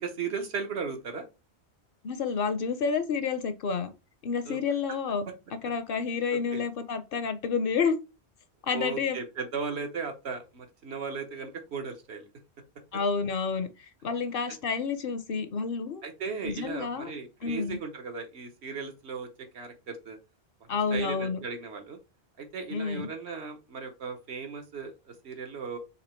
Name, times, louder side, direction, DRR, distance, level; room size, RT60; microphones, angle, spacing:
voice 1, 0.0-1.3 4.4-4.6 5.3-5.4 6.5-6.6 8.7-12.3 16.0-20.2 20.9-22.0 22.4-25.8, right 5 dB, 75° right, 1.3 m, -36 dB
voice 2, 2.0-3.9 4.2-5.2 5.6-7.9 8.6-9.2 12.9-16.0 16.4-17.1 17.4-17.8 20.7-21.4 22.7-23.1, left 5 dB, 60° left, 0.7 m, -29 dB
4.1 x 2.8 x 4.3 m
omnidirectional pair, 1.1 m